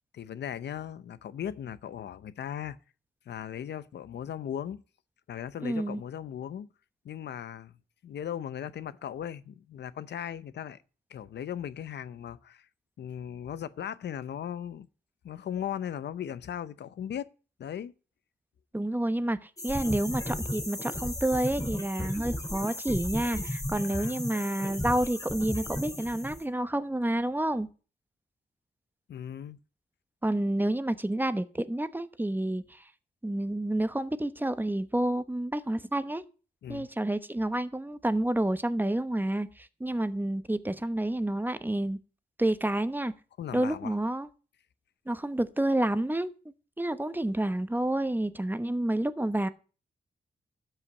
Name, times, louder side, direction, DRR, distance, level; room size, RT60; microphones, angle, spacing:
voice 1, 0.1-2.8 3.3-4.8 5.3-6.7 7.0-7.7 8.0-10.8 11.1-12.7 13.0-14.9 15.2-17.3 17.6-17.9 23.8-24.2 29.1-29.6 36.6-36.9 43.4-43.9, left 9 dB, 85° left, 0.7 m, -37 dB
voice 2, 5.6-6.0 18.7-27.7 30.2-32.8 33.2-36.2 36.7-42.0 42.4-43.1 43.5-44.3 45.1-46.3 46.8-49.5, right 1 dB, 10° right, 0.9 m, -29 dB
sound 1, 19.6-26.4, left 1 dB, 20° left, 3.9 m, -35 dB
12.5 x 5.8 x 8.0 m
cardioid pair, 90°, 17 cm